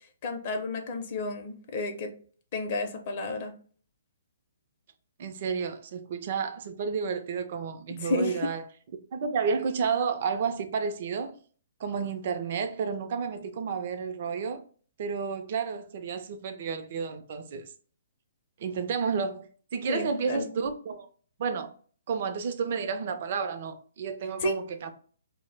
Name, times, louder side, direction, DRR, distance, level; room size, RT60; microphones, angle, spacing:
voice 1, 0.2-2.1 2.5-3.5 8.0-8.4 19.9-20.5 24.4-24.6, left 2 dB, 45° left, 0.5 m, -31 dB
voice 2, 5.2-8.6 9.1-11.3 11.8-14.6 15.0-17.7 18.6-19.5 19.7-21.1 21.4-21.7 22.1-24.9, right 5 dB, 50° right, 0.4 m, -31 dB
2.1 x 2.0 x 3.2 m
hypercardioid pair, 150°, 0 cm